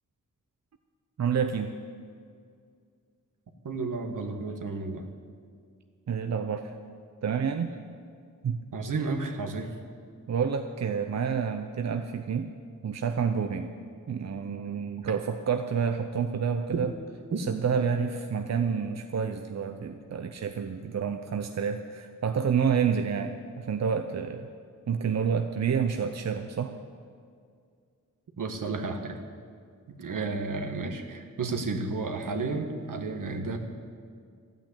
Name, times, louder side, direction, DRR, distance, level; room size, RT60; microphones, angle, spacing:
voice 1, 1.2-1.8 6.1-6.8 7.2-7.7 8.4-8.6 10.3-12.5 12.8-13.7 14.1-16.9 17.4-24.5 24.9-26.7, right 6 dB, 55° right, 6 dB, 0.7 m, -29 dB
voice 2, 3.6-5.0 8.7-9.8 17.3-17.4 28.4-29.2 29.9-33.6, right 3 dB, 75° right, 4 dB, 1.4 m, -32 dB
13.5 x 9.2 x 8.5 m, 2.2 s
wide cardioid pair, 100°, 32 cm